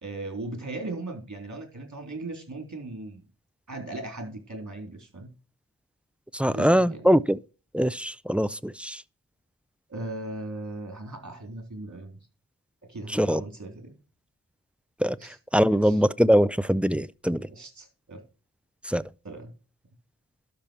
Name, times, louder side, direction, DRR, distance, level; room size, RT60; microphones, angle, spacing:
voice 1, 0.0-3.2 3.7-5.3 6.5-7.1 9.9-12.2 12.8-14.0 15.2-15.4 15.7-16.0 17.5-18.2 19.2-19.5, right 2 dB, 50° right, 3.4 m, -38 dB
voice 2, 6.3-7.4 7.7-9.0 13.1-13.4 15.0-15.2 15.5-17.5 18.9-19.0, equal, 5° right, 0.4 m, -22 dB
12.0 x 5.7 x 4.5 m
wide cardioid pair, 70°, 37 cm